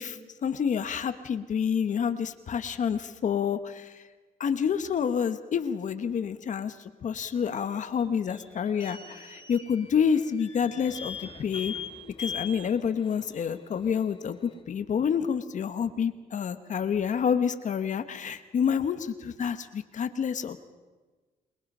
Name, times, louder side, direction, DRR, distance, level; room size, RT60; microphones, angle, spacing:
voice 1, 0.0-4.0 4.4-11.7 12.2-20.6, left 7 dB, 50° left, 10 dB, 1.3 m, -28 dB
sound 1, 7.3-14.6, left 5 dB, 30° left, 2.8 m, -42 dB
28.5 x 21.0 x 5.5 m, 1.3 s
cardioid pair, 130°, 16 cm